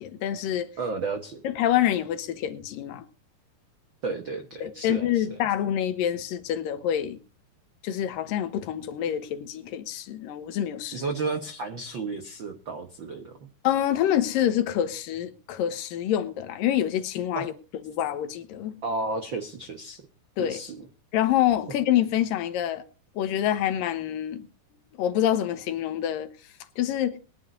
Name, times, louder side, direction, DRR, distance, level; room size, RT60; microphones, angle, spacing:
voice 1, 0.0-0.7 1.4-3.0 4.6-7.2 7.8-11.0 13.6-17.5 17.9-18.8 20.4-20.6 21.1-22.8 23.2-24.4 25.0-26.3 26.8-27.2, left 11 dB, 75° left, 2.6 m, -26 dB
voice 2, 0.8-1.4 4.0-5.4 10.9-13.4 17.3-17.4 18.8-20.0 20.4-20.9, right 3 dB, 85° right, 1.0 m, -32 dB
21.0 x 10.5 x 2.7 m
omnidirectional pair, 4.2 m